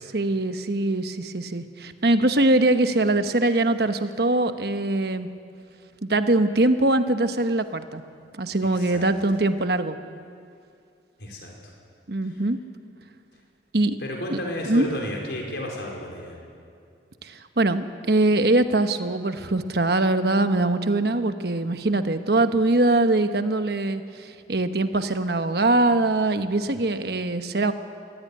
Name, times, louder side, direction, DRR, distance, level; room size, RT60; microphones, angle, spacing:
voice 1, 0.1-5.3 6.0-8.0 8.4-10.0 12.1-12.6 13.7-14.0 14.3-14.4 14.7-14.9 17.2-27.7, right 2 dB, 60° right, 9 dB, 1.1 m, -22 dB
voice 2, 8.7-9.1 11.2-11.5 14.0-16.4, equal, 70° left, 0 dB, 4.6 m, -32 dB
22.0 x 16.5 x 9.7 m, 2.3 s
head